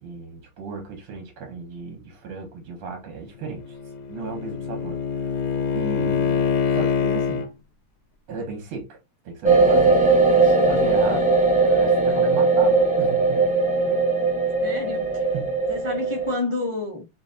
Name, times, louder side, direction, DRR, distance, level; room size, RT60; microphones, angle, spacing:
voice 1, 0.0-3.8 4.1-5.4 5.7-7.5 8.3-9.0 9.2-11.3 11.8-13.5 13.9-14.0 15.3-15.6, right 4 dB, 80° right, 2.3 m, -35 dB
Bowed string instrument, 3.4-7.5, left 6 dB, 75° left, 1.6 m, -25 dB
sound 1, 9.4-16.4, right 3 dB, 5° right, 0.8 m, -19 dB
voice 2, 11.7-12.2 14.6-15.3 15.7-17.1, left 3 dB, 50° left, 0.3 m, -31 dB
6.0 x 2.8 x 2.5 m
omnidirectional pair, 2.4 m